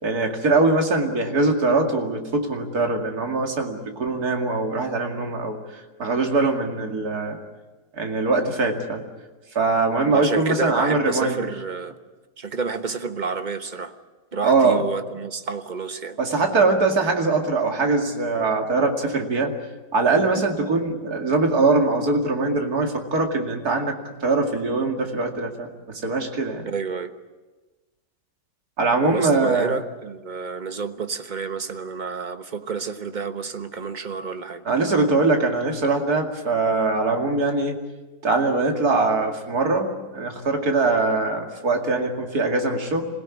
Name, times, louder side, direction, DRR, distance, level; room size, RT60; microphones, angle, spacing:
voice 1, 0.0-7.4 7.9-9.0 9.5-11.4 14.4-14.8 16.2-19.5 19.9-26.7 28.8-29.7 34.6-37.8 38.2-43.0, right 3 dB, 60° right, 3 dB, 2.9 m, -22 dB
voice 2, 10.1-11.9 12.4-13.9 14.3-16.2 26.6-27.1 29.1-34.6, right 5 dB, 30° right, 8 dB, 1.1 m, -29 dB
26.5 x 17.0 x 9.7 m, 1.2 s
omnidirectional pair, 1.8 m